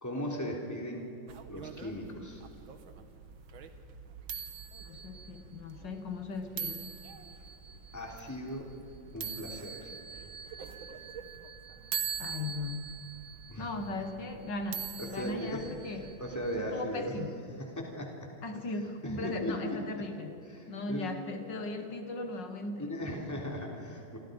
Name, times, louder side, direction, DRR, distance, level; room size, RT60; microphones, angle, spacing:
voice 1, 0.0-1.1 1.5-2.4 7.9-8.7 9.1-9.9 13.5-13.7 15.0-15.7 16.2-17.3 17.6-18.2 19.0-19.8 20.5-21.1 22.8-24.2, equal, 10° left, -1 dB, 3.6 m, -38 dB
sound 1, 1.3-16.6, right 7 dB, 90° right, 2.1 m, -43 dB
voice 2, 4.8-6.9 12.2-12.9 13.6-16.2 16.6-17.3 18.4-22.9, left 2 dB, 65° left, 6 dB, 2.1 m, -38 dB
29.0 x 26.0 x 5.4 m, 2.8 s
omnidirectional pair, 2.1 m